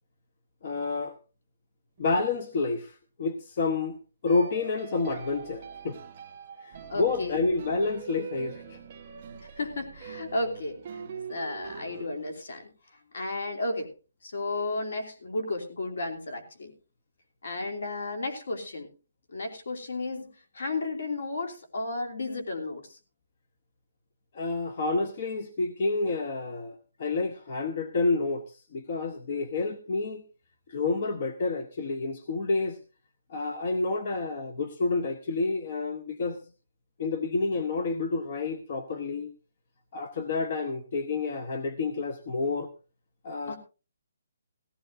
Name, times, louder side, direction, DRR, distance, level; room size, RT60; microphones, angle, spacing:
voice 1, 0.6-1.2 2.0-4.0 4.2-6.0 6.6-8.8 24.3-30.2 30.7-32.8 33.3-36.4 37.0-39.3 39.9-42.7 43.2-43.6, left 3 dB, 30° left, 9 dB, 0.9 m, -29 dB
sound 1, 2.0-2.1 4.3-12.1, right 6 dB, 25° right, 1.1 m, -44 dB
voice 2, 6.9-7.4 9.4-11.0 11.3-13.9 14.2-16.7 17.4-18.9 19.3-23.0 43.5-43.6, left 2 dB, 60° left, 4 dB, 3.1 m, -33 dB
17.5 x 15.5 x 2.6 m, 0.32 s
hypercardioid pair, 180°, 0 cm